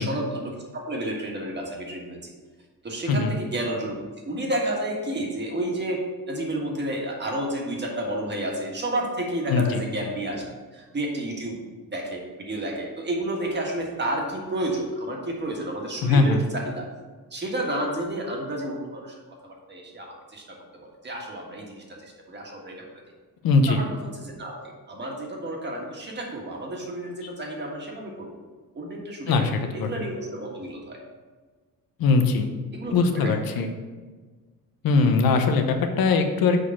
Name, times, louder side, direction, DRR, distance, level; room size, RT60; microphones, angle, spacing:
voice 1, 0.0-2.3 2.8-10.4 10.7-11.6 11.9-16.9 17.3-19.1 19.4-22.8 23.7-28.4 28.7-29.3 29.7-31.0 32.7-33.6, right 1 dB, 30° right, -1 dB, 1.6 m, -31 dB
voice 2, 9.5-9.8 16.0-16.4 23.4-23.8 29.3-30.0 32.0-32.5 32.9-33.7 34.8-36.6, left 4 dB, 90° left, 6 dB, 1.0 m, -21 dB
6.5 x 5.1 x 5.8 m, 1.4 s
wide cardioid pair, 160°, 34 cm